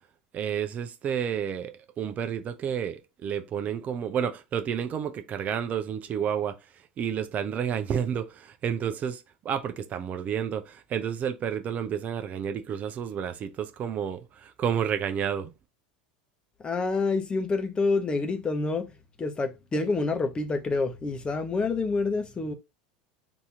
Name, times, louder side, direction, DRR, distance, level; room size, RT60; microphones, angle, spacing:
voice 1, 0.3-6.5 7.0-15.5, right 8 dB, 35° right, 0.7 m, -30 dB
voice 2, 16.6-18.9 19.2-22.5, left 3 dB, 20° left, 1.0 m, -27 dB
4.1 x 2.9 x 3.5 m
figure-of-eight pair, 80°, 4 cm